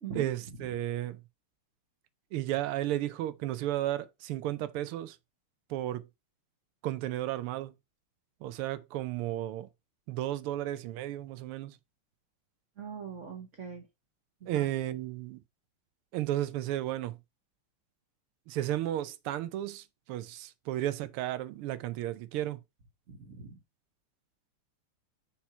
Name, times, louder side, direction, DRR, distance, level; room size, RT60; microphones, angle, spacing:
voice 1, 0.2-1.2 2.3-5.2 5.7-6.1 6.8-7.7 8.4-9.7 10.1-11.8 14.5-15.4 16.1-17.2 18.5-22.6, right 13 dB, 85° right, 1.6 m, -33 dB
voice 2, 12.8-13.9 14.4-14.7 23.1-23.6, right 6 dB, 45° right, 1.1 m, -42 dB
5.7 x 4.3 x 4.3 m
omnidirectional pair, 2.4 m